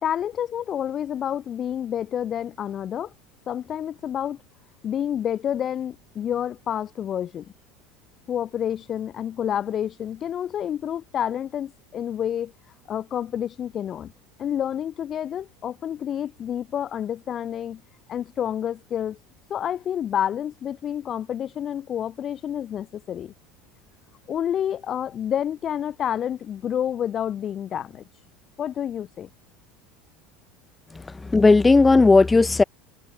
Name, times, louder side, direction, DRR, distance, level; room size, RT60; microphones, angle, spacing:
voice 1, 0.0-3.1 3.5-4.4 4.8-7.5 8.3-12.5 12.9-14.1 14.4-17.8 18.1-19.2 19.5-23.3 24.3-28.0 28.6-29.3, left 9 dB, 40° left, 4.3 m, -29 dB
voice 2, 30.9-32.6, left 3 dB, 15° left, 1.9 m, -16 dB
supercardioid pair, 95°, 0 cm